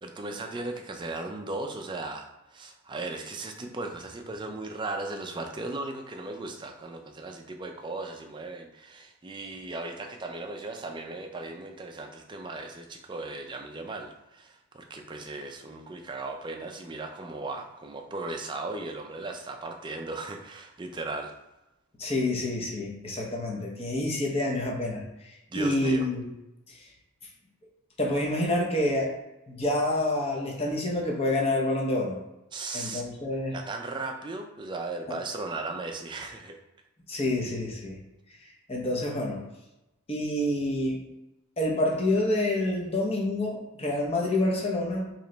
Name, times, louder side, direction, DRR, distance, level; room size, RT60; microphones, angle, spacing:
voice 1, 0.0-21.3 25.5-26.1 32.5-33.0 33.5-36.6, right 2 dB, 20° right, 3 dB, 0.3 m, -37 dB
voice 2, 22.0-26.2 26.7-26.8 28.0-29.1 29.5-32.2 32.7-33.6 37.1-38.0 38.7-39.5 40.1-41.0 41.6-45.1, left 1 dB, 25° left, -2 dB, 0.7 m, -28 dB
3.2 x 2.9 x 3.8 m, 0.94 s
head